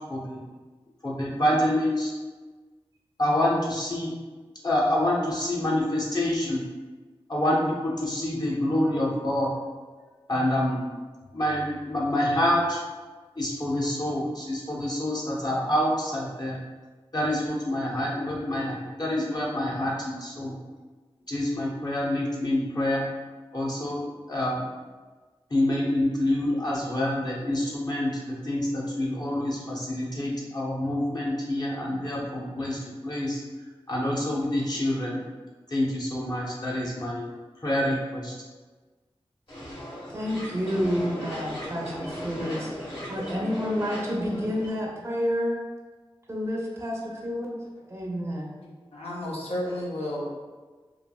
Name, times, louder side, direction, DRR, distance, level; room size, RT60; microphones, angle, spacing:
voice 1, 0.1-0.4 1.0-2.1 3.2-4.2 4.6-6.6 7.3-9.5 10.3-10.9 11.3-12.8 13.4-16.6 17.1-20.6 21.3-23.1 23.5-24.7 25.5-33.4 33.9-35.2 35.7-37.3 37.6-38.3, left 1 dB, 45° left, -4 dB, 0.7 m, -27 dB
sound 1, 39.5-44.7, equal, 60° left, 1.2 m, -37 dB
voice 2, 40.1-45.6 46.3-47.5 47.9-48.5, equal, 25° right, -2 dB, 0.5 m, -29 dB
voice 3, 48.9-50.3, left 1 dB, 90° left, -5 dB, 0.6 m, -32 dB
3.1 x 2.4 x 2.2 m, 1.3 s
wide cardioid pair, 55°, 10 cm